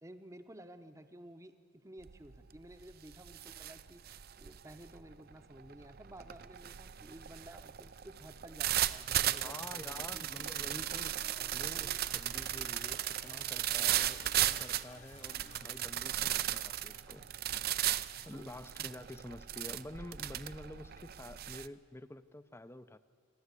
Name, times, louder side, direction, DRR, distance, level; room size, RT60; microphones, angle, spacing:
voice 1, 0.0-4.0 4.4-10.2 16.2-16.4 18.3-18.6, right 1 dB, 15° right, 9 dB, 0.8 m, -53 dB
sound 1, 2.0-2.4 2.7-21.7, right 12 dB, 45° right, 0.5 m, -36 dB
sound 2, 9.2-16.3, left 3 dB, 35° left, 0.8 m, -55 dB
voice 2, 9.4-17.3 18.2-23.0, left 1 dB, 10° left, 13 dB, 0.5 m, -49 dB
27.5 x 11.5 x 8.3 m, 2.3 s
head